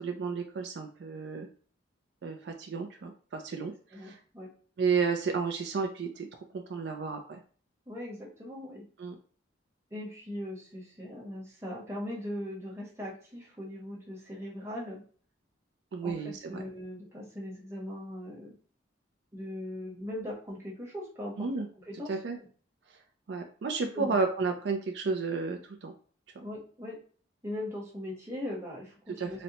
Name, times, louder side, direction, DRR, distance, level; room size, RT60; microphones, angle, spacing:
voice 1, 0.0-1.5 2.2-4.2 4.8-6.3 6.5-7.4 9.0-9.2 15.9-16.6 21.4-21.7 22.1-22.4 23.3-25.9 26.4-26.5 29.2-29.4, right 4 dB, 60° right, 4 dB, 0.4 m, -32 dB
voice 2, 3.9-4.5 7.9-8.8 9.9-15.0 16.0-18.5 19.3-21.5 21.9-22.5 23.9-24.3 26.4-27.0 27.4-29.4, left 1 dB, 15° right, -4 dB, 0.9 m, -40 dB
4.1 x 2.1 x 2.8 m, 0.43 s
head